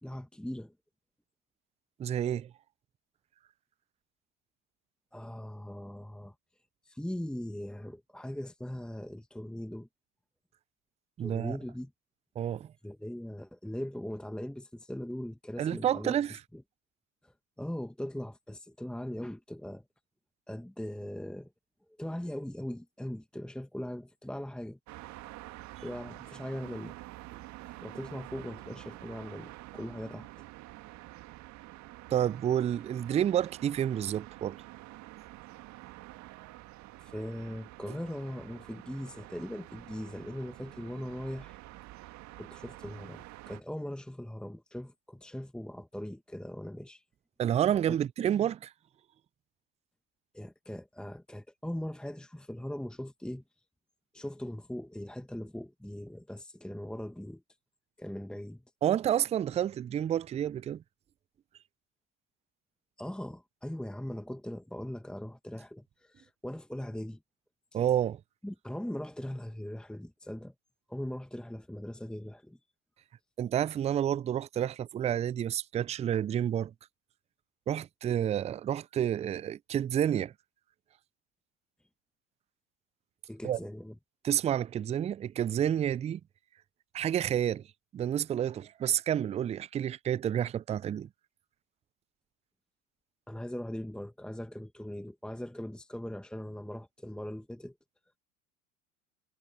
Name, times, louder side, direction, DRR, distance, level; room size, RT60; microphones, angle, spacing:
voice 1, 0.0-0.7 5.1-6.3 6.9-9.9 11.2-11.9 12.8-16.1 16.5-16.6 17.2-19.8 20.5-21.5 22.0-24.8 25.8-27.0 27.8-30.3 37.0-41.6 42.4-47.0 47.9-48.0 50.3-53.4 54.1-57.4 58.0-58.6 63.0-67.2 68.4-70.5 70.9-72.6 83.3-83.9 93.3-97.7, left 1 dB, ahead, 2.1 m, -40 dB
voice 2, 2.0-2.5 11.2-11.6 12.4-12.7 15.6-16.4 32.1-34.6 47.4-48.7 58.8-60.8 67.7-68.2 73.4-76.7 77.7-80.3 83.4-83.6 84.2-86.2 86.9-87.6 87.9-91.1, right 10 dB, 15° right, 0.5 m, -29 dB
sound 1, 24.9-43.6, right 18 dB, 45° right, 2.1 m, -48 dB
figure-of-eight pair, 75°, 39 cm